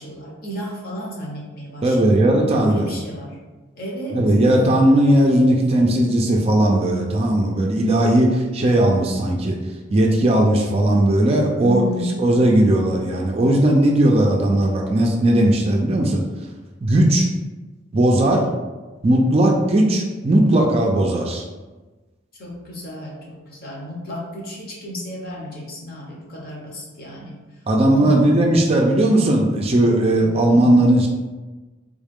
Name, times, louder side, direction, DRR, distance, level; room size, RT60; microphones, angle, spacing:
voice 1, 0.0-3.4 3.8-4.2 11.6-12.2 16.9-17.1 22.4-27.4 27.9-28.3 30.2-30.5, equal, 50° left, -3 dB, 0.9 m, -32 dB
voice 2, 1.8-2.9 4.1-9.6 9.9-11.8 12.2-16.2 16.8-17.2 17.9-18.5 19.0-21.4 27.7-31.1, right 1 dB, 30° right, 0 dB, 0.4 m, -17 dB
3.6 x 2.4 x 3.4 m, 1.2 s
head